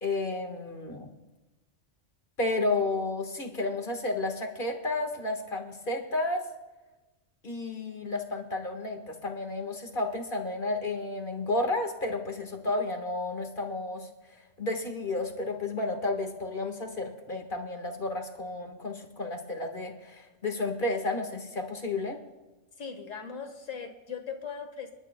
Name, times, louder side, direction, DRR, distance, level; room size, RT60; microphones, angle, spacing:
voice 1, 0.0-1.1 2.4-6.5 7.4-14.1 14.6-22.2, left 2 dB, 40° left, 4 dB, 1.7 m, -32 dB
voice 2, 22.8-24.9, left 6 dB, 80° left, 5 dB, 1.9 m, -39 dB
28.0 x 12.0 x 2.2 m, 1.1 s
omnidirectional pair, 1.3 m